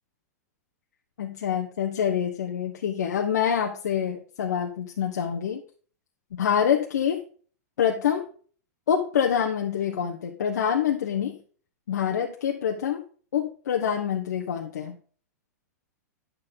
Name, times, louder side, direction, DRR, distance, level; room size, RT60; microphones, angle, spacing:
voice 1, 1.2-5.6 6.3-7.2 7.8-8.3 8.9-11.4 11.9-13.0 13.3-14.9, left 8 dB, 80° left, 2 dB, 1.2 m, -26 dB
9.6 x 6.9 x 3.8 m, 0.42 s
hypercardioid pair, 130°, 9 cm